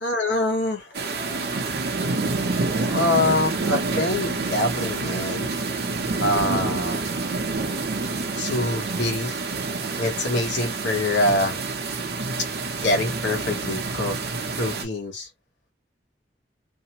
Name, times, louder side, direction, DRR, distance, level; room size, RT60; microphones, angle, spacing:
voice 1, 0.0-1.7 2.9-5.5 6.2-7.1 8.4-9.4 10.0-11.6 12.6-14.2 14.6-15.3, left 2 dB, 85° left, 1.0 m, -25 dB
sound 1, 0.9-14.8, right 3 dB, 60° right, 0.7 m, -28 dB
2.7 x 2.1 x 2.8 m
head